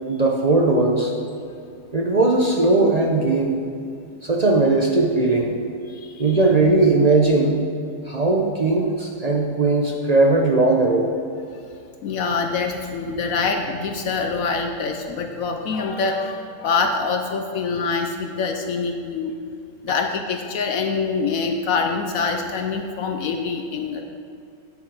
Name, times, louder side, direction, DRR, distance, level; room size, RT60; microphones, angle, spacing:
voice 1, 0.1-1.1 1.9-3.6 4.2-5.5 6.2-7.6 8.1-11.1, right 2 dB, 50° right, -1 dB, 0.4 m, -18 dB
voice 2, 5.9-6.4 12.0-19.3 19.8-24.0, left 4 dB, 65° left, 4 dB, 0.9 m, -25 dB
9.3 x 7.6 x 4.7 m, 2.5 s
omnidirectional pair, 1.8 m